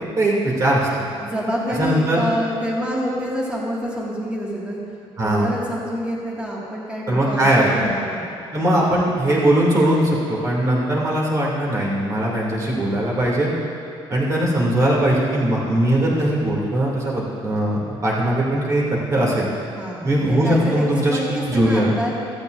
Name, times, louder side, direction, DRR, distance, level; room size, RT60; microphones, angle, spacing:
voice 1, 0.2-0.9 1.8-2.2 5.2-5.5 7.1-7.9 8.5-13.5 14.1-18.8 19.1-19.5 20.0-21.9, right 1 dB, 30° right, -4 dB, 2.6 m, -20 dB
voice 2, 1.2-4.8 5.2-8.3 19.8-22.1, equal, 10° right, -5 dB, 2.0 m, -27 dB
15.5 x 14.5 x 2.6 m, 2.5 s
cardioid pair, 175°, 10 cm